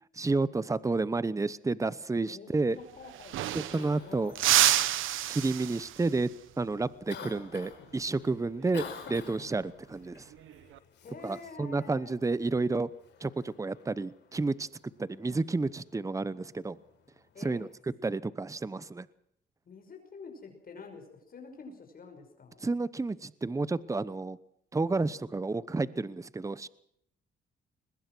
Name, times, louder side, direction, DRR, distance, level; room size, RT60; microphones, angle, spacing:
voice 1, 0.2-2.8 3.5-4.3 5.3-6.3 6.6-10.3 11.2-12.9 13.2-14.7 15.0-16.8 17.4-17.7 18.0-19.1 22.6-24.4 24.7-26.7, right 3 dB, 15° right, 18 dB, 0.9 m, -30 dB
voice 2, 2.3-4.4 11.0-12.2 17.3-17.7 19.6-22.7, left 4 dB, 45° left, 4 dB, 5.9 m, -48 dB
sound 1, 2.7-2.8 3.0-4.0 4.4-6.1 8.6-8.9 10.3-10.8, right 13 dB, 85° right, 1.2 m, -28 dB
Cough, 3.2-17.7, left 7 dB, 65° left, 4.9 m, -51 dB
22.5 x 21.0 x 6.2 m, 0.71 s
cardioid pair, 90°, 20 cm